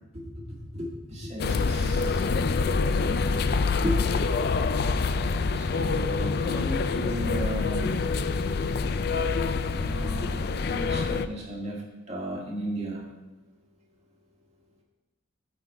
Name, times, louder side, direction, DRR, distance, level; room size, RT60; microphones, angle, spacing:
voice 1, 0.7-2.4 2.7-2.8 3.8-4.0 4.6-4.7 5.5-8.0 9.7-11.8 12.1-13.0, equal, 35° right, -3 dB, 1.9 m, -35 dB
sound 1, 1.4-11.3, left 4 dB, 50° left, 0.4 m, -26 dB
12.5 x 4.1 x 4.8 m, 1.0 s
head